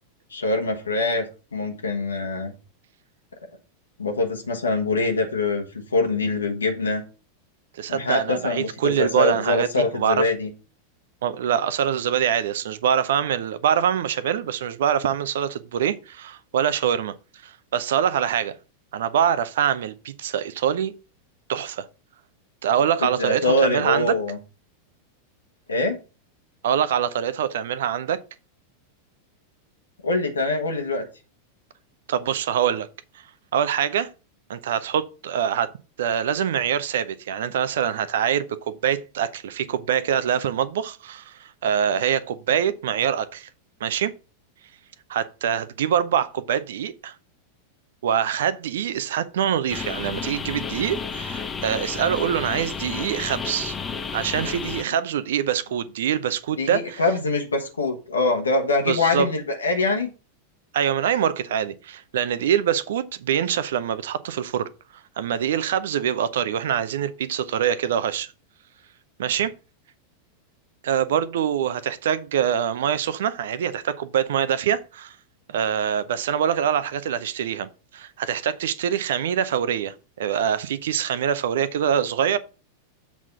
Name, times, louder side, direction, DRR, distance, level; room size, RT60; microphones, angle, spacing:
voice 1, 0.3-2.5 4.0-5.6 5.9-7.0 7.9-10.5 23.0-24.4 25.7-26.0 30.0-31.0 56.6-60.1, left 2 dB, 75° left, 1.3 m, -24 dB
voice 2, 7.7-10.3 11.2-17.1 17.4-18.6 18.9-20.9 21.5-21.9 22.6-24.1 26.6-28.2 32.1-32.9 33.5-34.1 34.5-35.7 36.0-43.5 43.8-44.1 45.1-47.1 48.0-53.8 54.1-57.0 58.9-59.3 60.7-64.7 65.2-68.3 69.2-69.5 70.8-75.2 75.5-82.4, right 9 dB, 60° right, 0.7 m, -24 dB
sound 1, 49.7-54.8, left 5 dB, 20° left, 0.9 m, -31 dB
7.3 x 4.2 x 6.7 m
figure-of-eight pair, 90°, 0 cm